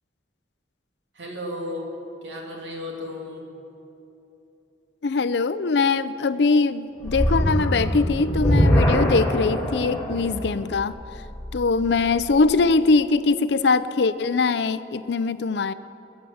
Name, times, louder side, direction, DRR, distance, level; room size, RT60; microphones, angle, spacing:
voice 1, 1.1-1.9 2.2-3.5, left 1 dB, 85° right, 0 dB, 2.7 m, -34 dB
voice 2, 5.0-11.0 11.5-15.7, left 4 dB, 70° left, 14 dB, 0.5 m, -22 dB
sound 1, 7.0-12.3, equal, 10° left, 1.8 m, -23 dB
21.5 x 7.3 x 7.8 m, 2.9 s
head